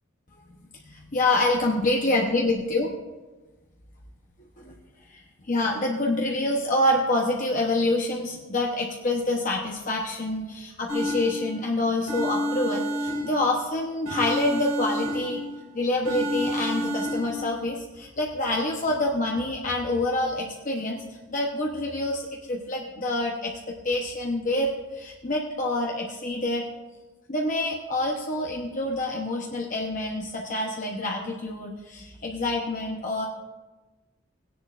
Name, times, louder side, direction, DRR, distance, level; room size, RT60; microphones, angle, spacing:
voice 1, 0.9-2.9 4.6-4.7 5.1-15.4 15.7-26.7 27.3-33.3, left 2 dB, 40° left, -1 dB, 0.9 m, -27 dB
sound 1, 10.9-11.7 12.1-13.7 14.0-15.6 16.0-17.5, equal, 70° right, 2.3 m, -29 dB
17.5 x 10.0 x 2.5 m, 1.2 s
head